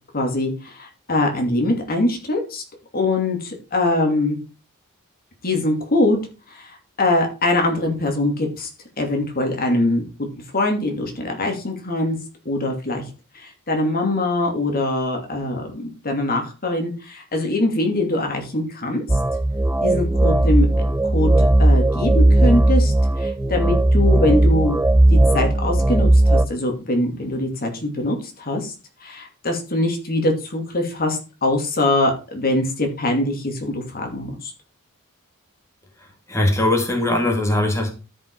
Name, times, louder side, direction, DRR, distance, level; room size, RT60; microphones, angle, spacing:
voice 1, 0.1-2.6 2.9-4.4 5.4-6.2 6.5-8.7 9.0-10.0 10.5-12.2 12.4-13.0 13.3-19.0 19.8-20.7 21.0-24.8 25.1-28.7 29.0-34.5, left 2 dB, 45° left, 3 dB, 2.6 m, -23 dB
sound 1, 19.1-26.5, right 1 dB, 10° right, 0.4 m, -16 dB
voice 2, 36.0-37.9, left 1 dB, 15° left, 1 dB, 2.3 m, -21 dB
13.0 x 5.4 x 4.7 m, 0.32 s
head